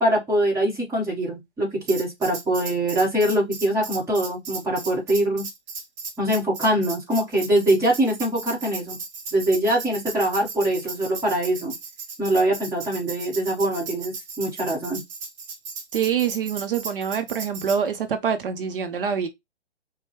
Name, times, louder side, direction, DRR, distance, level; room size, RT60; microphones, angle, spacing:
voice 1, 0.0-5.5 6.2-9.0 9.3-11.7 12.2-15.0, right 1 dB, 10° right, 1.3 m, -23 dB
Tambourine, 1.9-17.8, right 5 dB, 30° right, 1.0 m, -36 dB
voice 2, 15.9-19.3, right 7 dB, 50° right, 0.8 m, -25 dB
5.1 x 2.3 x 3.1 m
figure-of-eight pair, 135°, 34 cm